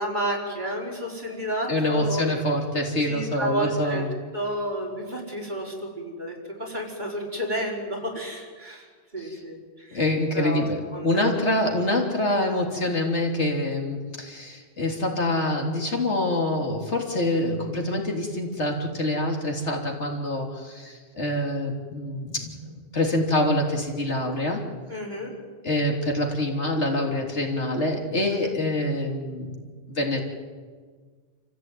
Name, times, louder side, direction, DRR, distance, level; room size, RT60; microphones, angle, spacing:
voice 1, 0.0-2.2 3.1-4.0 4.3-8.8 9.1-10.0 10.3-10.6 10.9-11.4 24.9-25.3 28.3-28.5, right 1 dB, 40° right, -2 dB, 5.1 m, -31 dB
voice 2, 1.7-4.1 9.2-9.4 9.9-24.6 25.6-29.6 29.9-30.2, left 1 dB, 70° left, 1 dB, 3.6 m, -26 dB
28.5 x 15.0 x 9.3 m, 1.5 s
omnidirectional pair, 1.2 m